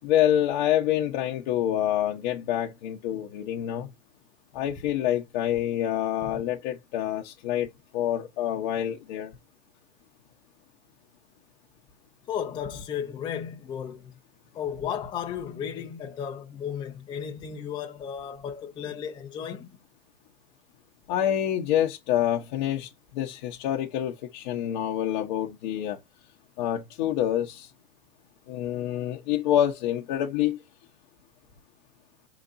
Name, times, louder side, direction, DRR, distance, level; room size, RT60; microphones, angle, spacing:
voice 1, 0.0-3.9 4.5-7.7 7.9-9.3 21.1-26.0 26.6-27.7 28.5-30.6, left 11 dB, 45° left, 0.9 m, -27 dB
voice 2, 12.3-14.1 14.5-19.7, left 8 dB, 15° left, 0.7 m, -34 dB
5.0 x 4.0 x 2.5 m
hypercardioid pair, 140°, 33 cm